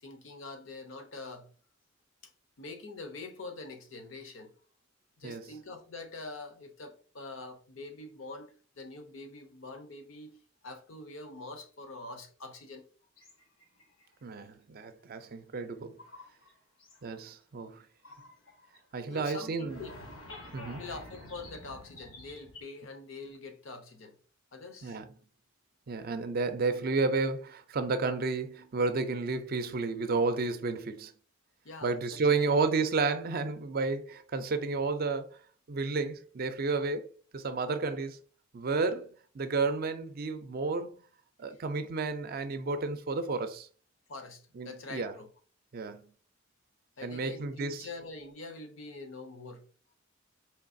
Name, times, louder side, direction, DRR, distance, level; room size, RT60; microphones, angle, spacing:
voice 1, 0.0-1.5 2.2-2.3 2.6-4.5 5.2-12.8 19.1-20.0 20.8-24.1 24.5-25.0 31.6-32.5 41.5-41.6 44.1-45.3 47.0-49.6, left 3 dB, 70° left, 0.7 m, -45 dB
sound 1, 13.2-14.0 16.0-16.5 16.8-17.1 18.0-18.8 19.1-19.2 19.6-22.6, left 2 dB, 90° left, 1.1 m, -49 dB
voice 2, 14.2-16.0 17.0-17.8 18.9-19.8 20.5-20.9 24.8-25.1 25.9-31.1 31.8-35.4 35.7-38.2 38.5-41.0 41.4-43.7 44.5-45.1 45.7-46.1 47.0-47.9, right 4 dB, 45° right, 0.4 m, -31 dB
4.5 x 3.1 x 2.6 m
head